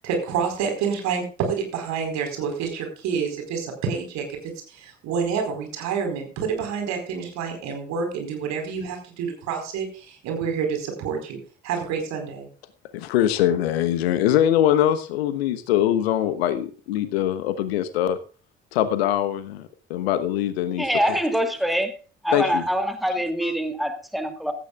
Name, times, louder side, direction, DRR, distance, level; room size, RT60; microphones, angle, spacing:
voice 1, 0.0-11.4 11.6-12.5, right 6 dB, 60° right, 4.6 m, -28 dB
voice 2, 12.9-18.2 18.7-21.2 22.3-22.6, left 11 dB, 70° left, 1.2 m, -23 dB
voice 3, 20.8-21.9 22.2-24.5, equal, ahead, 2.5 m, -24 dB
16.0 x 14.0 x 2.4 m
figure-of-eight pair, 45°, 32 cm